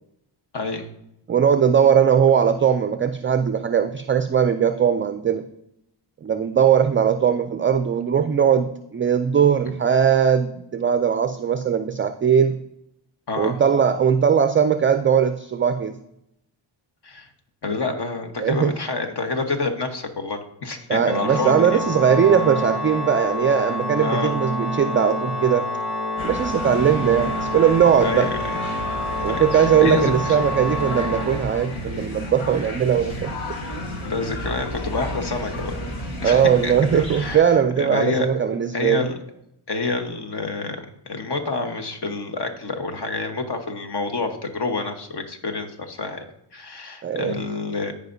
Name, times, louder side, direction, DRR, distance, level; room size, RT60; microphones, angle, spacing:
voice 1, 0.5-0.9 13.3-13.6 17.0-17.3 17.6-21.8 24.0-24.3 28.0-28.5 29.3-30.4 34.0-38.3 38.7-39.2 39.7-46.2 46.5-47.9, left 3 dB, 55° left, 6 dB, 1.4 m, -28 dB
voice 2, 1.3-5.4 6.2-12.6 13.4-16.0 18.4-18.7 20.9-25.7 26.2-28.3 29.2-33.3 36.2-39.0 47.0-47.3, right 8 dB, 30° right, 10 dB, 0.3 m, -19 dB
Organ, 21.1-32.0, left 1 dB, ahead, 1.2 m, -28 dB
sound 1, 26.2-37.4, left 1 dB, 70° left, 1.6 m, -32 dB
14.5 x 5.1 x 2.7 m, 0.80 s
cardioid pair, 85°, 49 cm